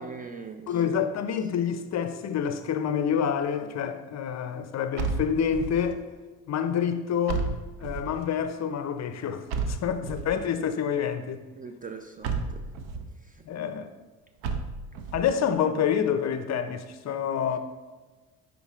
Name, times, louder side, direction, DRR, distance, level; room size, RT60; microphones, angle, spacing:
voice 1, 0.0-1.0 9.9-10.1 11.5-12.7 13.1-13.5 17.4-17.6, right 5 dB, 20° right, 0.4 m, -42 dB
voice 2, 0.7-6.0 6.5-7.5 7.8-11.4 13.5-13.9 15.1-17.6, left 8 dB, 40° left, 0.5 m, -27 dB
sound 1, 5.0-5.9 7.3-8.2 9.5-10.5 12.2-13.1 14.4-15.3, right 4 dB, 65° right, 0.7 m, -32 dB
10.0 x 3.9 x 2.4 m
hypercardioid pair, 60°, 42 cm